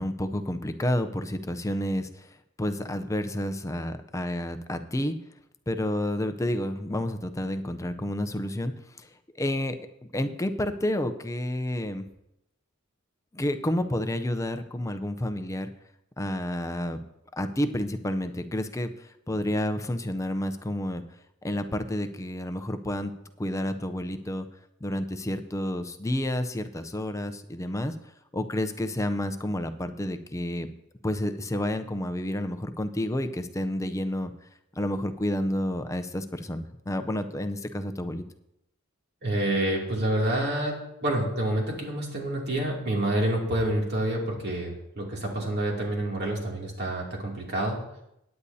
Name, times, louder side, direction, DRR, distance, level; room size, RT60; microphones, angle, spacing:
voice 1, 0.0-5.1 5.7-8.7 9.0-9.1 9.4-9.8 10.0-12.0 13.3-15.7 16.2-17.0 17.3-21.0 21.4-23.1 23.4-24.5 24.8-27.9 28.3-30.7 31.0-34.3 34.8-38.2, left 1 dB, 15° left, 9 dB, 0.5 m, -30 dB
voice 2, 39.2-40.8 41.0-47.8, right 1 dB, 50° right, -1 dB, 2.6 m, -28 dB
17.0 x 9.7 x 2.8 m, 0.82 s
head